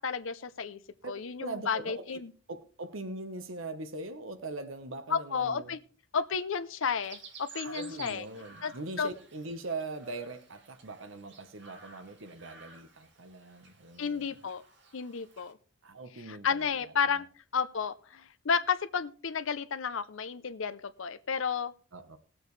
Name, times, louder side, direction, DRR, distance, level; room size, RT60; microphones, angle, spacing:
voice 1, 0.0-0.8 1.1-2.3 5.1-5.8 6.1-8.3 8.6-8.7 9.0-9.1 14.0-14.6 14.9-15.5 16.3-17.3 17.5-21.7, left 6 dB, 70° left, 0.6 m, -32 dB
voice 2, 1.4-2.2 2.5-5.8 7.6-14.4 15.8-17.2 21.9-22.2, right 2 dB, 70° right, 1.1 m, -41 dB
Chirp tweet, 7.0-15.5, right 5 dB, 55° right, 2.3 m, -53 dB
19.0 x 7.8 x 3.2 m
head